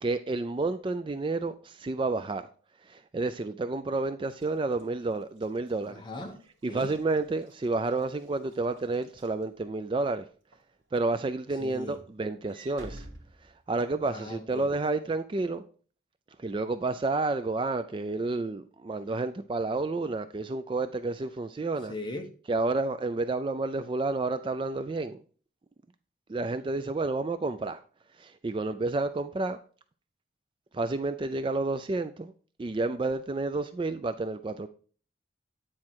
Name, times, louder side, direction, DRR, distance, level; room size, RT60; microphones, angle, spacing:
voice 1, 0.0-2.4 2.9-6.0 6.6-10.3 10.9-13.1 13.4-15.6 16.4-21.9 22.5-25.2 26.3-27.8 28.2-29.6 30.7-32.3 32.6-34.7, right 3 dB, 25° right, 0.3 m, -30 dB
Walk footsteps / Slam, 4.3-10.0 10.5-10.8 11.1-14.1, right 1 dB, 80° right, 2.4 m, -52 dB
voice 2, 5.9-6.4 6.7-6.9 11.6-12.0 14.1-14.7 21.9-22.4, left 1 dB, 25° left, 1.0 m, -39 dB
9.5 x 4.3 x 4.5 m
head